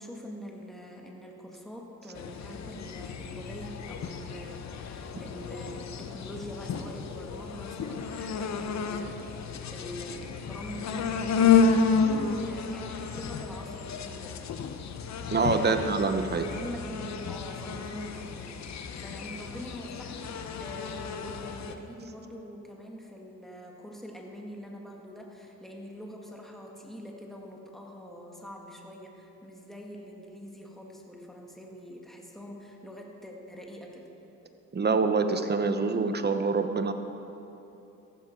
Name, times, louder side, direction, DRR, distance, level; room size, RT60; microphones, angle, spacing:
voice 1, 0.0-14.5 15.5-34.1, equal, ahead, -1 dB, 2.0 m, -44 dB
sound 1, 2.1-21.7, left 5 dB, 55° left, 0.9 m, -31 dB
voice 2, 15.3-16.5 34.7-36.9, right 4 dB, 30° right, 8 dB, 1.0 m, -25 dB
14.5 x 12.0 x 4.6 m, 2.9 s
cardioid pair, 80°, 33 cm